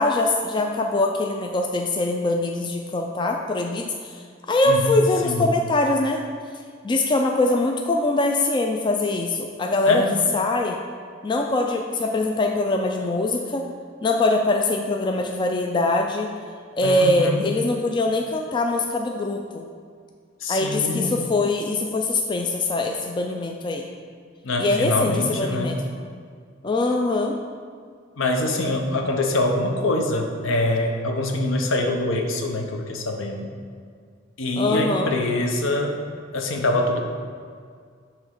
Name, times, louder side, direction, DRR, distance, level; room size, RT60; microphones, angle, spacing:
voice 1, 0.0-6.2 6.8-10.0 10.3-10.8 11.2-13.6 14.0-16.3 16.8-19.6 20.5-23.8 24.6-25.8 26.6-27.4 34.6-35.1, left 2 dB, 25° left, 2 dB, 0.3 m, -23 dB
voice 2, 5.2-5.5 9.9-10.1 16.8-17.5 20.4-21.2 24.4-25.8 28.2-33.5 34.4-36.0 36.3-37.0, left 2 dB, 70° left, 3 dB, 0.8 m, -24 dB
8.1 x 3.0 x 5.6 m, 2.1 s
head